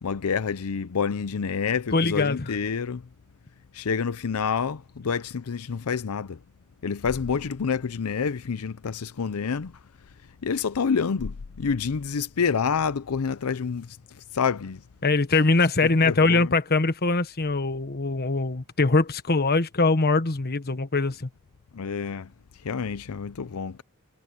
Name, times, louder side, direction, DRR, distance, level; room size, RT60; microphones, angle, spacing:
voice 1, 0.0-3.0 3.7-6.4 6.8-9.8 10.4-14.8 16.0-16.5 21.7-22.3 22.6-23.8, left 6 dB, 85° left, 0.6 m, -28 dB
voice 2, 1.9-2.5 15.0-21.3, left 3 dB, 45° left, 1.3 m, -22 dB
head